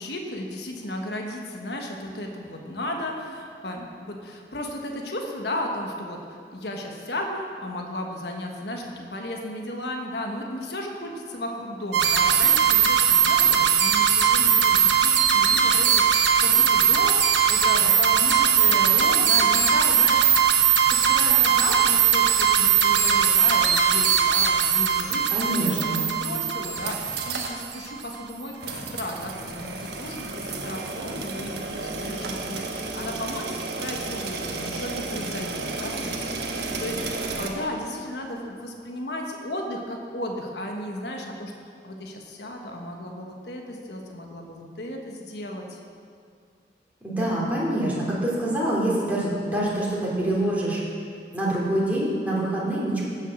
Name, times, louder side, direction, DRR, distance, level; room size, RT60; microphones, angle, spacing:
voice 1, 0.0-41.5 41.8-45.8, left 1 dB, 70° left, 1 dB, 1.3 m, -34 dB
sound 1, 11.9-27.8, right 8 dB, 90° right, 1.0 m, -20 dB
voice 2, 25.3-26.1 47.0-50.8 51.3-53.0, right 1 dB, 10° right, -6 dB, 2.6 m, -25 dB
sound 2, 26.8-27.6 27.9-28.0 28.6-37.5, right 3 dB, 65° right, 1.2 m, -32 dB
15.5 x 6.5 x 6.2 m, 2.3 s
head